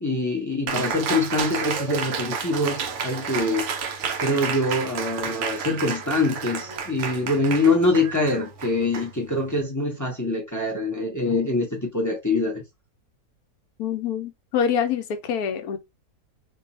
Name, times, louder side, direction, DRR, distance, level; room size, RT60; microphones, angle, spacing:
voice 1, 0.0-3.7 4.2-12.6, left 2 dB, 25° left, 0.4 m, -24 dB
Cheering, 0.7-9.6, right 6 dB, 65° right, 0.7 m, -31 dB
voice 2, 13.8-15.8, left 7 dB, 75° left, 1.0 m, -25 dB
2.6 x 2.4 x 4.0 m
omnidirectional pair, 1.7 m